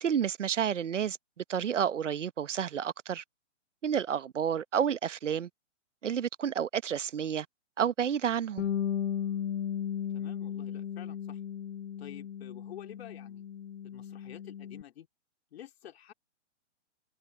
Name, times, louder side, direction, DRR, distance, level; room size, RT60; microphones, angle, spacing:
voice 1, 0.0-3.2 3.8-5.5 6.0-7.5 7.8-8.6, right 8 dB, 80° right, 1.0 m, -30 dB
Bass guitar, 8.6-14.8, left 9 dB, 85° left, 1.0 m, -35 dB
voice 2, 10.1-11.4 12.0-13.4 13.8-15.1 15.5-16.1, left 11 dB, 55° left, 2.8 m, -50 dB
hypercardioid pair, 135°, 36 cm